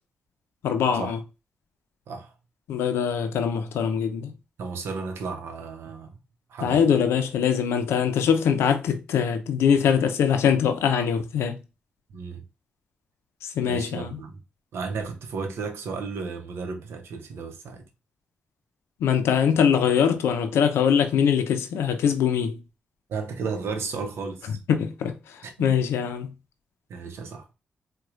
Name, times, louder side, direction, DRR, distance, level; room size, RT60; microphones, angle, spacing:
voice 1, 0.6-1.2 2.7-4.3 6.6-11.6 13.6-14.2 19.0-22.6 24.7-25.1 25.6-26.3, left 7 dB, 85° left, 0.5 m, -22 dB
voice 2, 4.6-6.1 6.5-6.9 12.1-12.4 13.6-14.4 14.7-17.9 23.1-24.6 25.4-25.7 26.0-26.1 26.9-27.5, right 4 dB, 80° right, 0.7 m, -34 dB
4.2 x 2.2 x 2.4 m
supercardioid pair, 45°, 4 cm